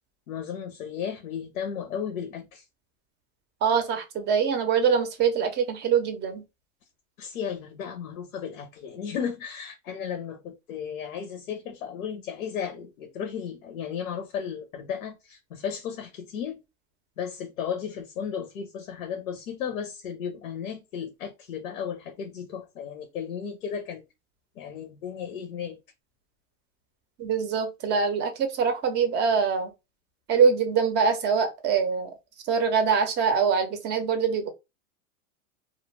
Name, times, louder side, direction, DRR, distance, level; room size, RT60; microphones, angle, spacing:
voice 1, 0.3-2.6 7.2-16.6 17.2-24.0 24.6-25.8, left 7 dB, 85° left, 0.7 m, -34 dB
voice 2, 3.6-6.4 27.2-29.7 30.3-32.1 32.4-34.5, right 6 dB, 25° right, 0.5 m, -24 dB
2.3 x 2.1 x 3.1 m
hypercardioid pair, 125°, 41 cm